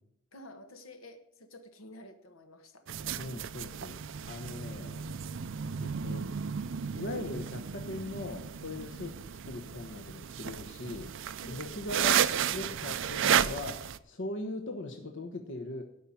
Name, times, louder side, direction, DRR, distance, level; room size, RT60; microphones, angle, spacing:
voice 1, 0.3-2.9 4.2-4.5 8.8-8.9 11.4-11.8, left 1 dB, 80° left, 7 dB, 1.6 m, -50 dB
sound 1, 2.9-14.0, right 8 dB, 65° right, 0.5 m, -33 dB
voice 2, 3.2-4.0 4.3-5.1 5.8-6.3 6.9-9.1 9.5-11.1 11.5-12.2 12.5-15.8, left 2 dB, 60° left, 4 dB, 1.1 m, -40 dB
12.5 x 5.7 x 9.1 m, 0.77 s
head